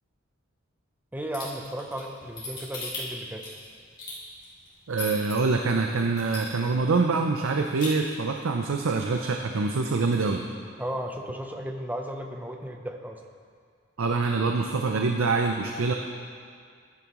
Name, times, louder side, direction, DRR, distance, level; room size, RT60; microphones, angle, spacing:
voice 1, 1.1-3.4 10.8-13.2, equal, 10° right, 3 dB, 0.7 m, -35 dB
sound 1, 1.3-5.3 5.8-5.9 6.2-6.8 7.1-7.2 7.5-7.9, left 3 dB, 25° left, 2.8 m, -37 dB
voice 2, 4.9-10.4 14.0-15.9, right 4 dB, 80° right, 3 dB, 0.6 m, -25 dB
14.0 x 9.7 x 3.0 m, 2.1 s
head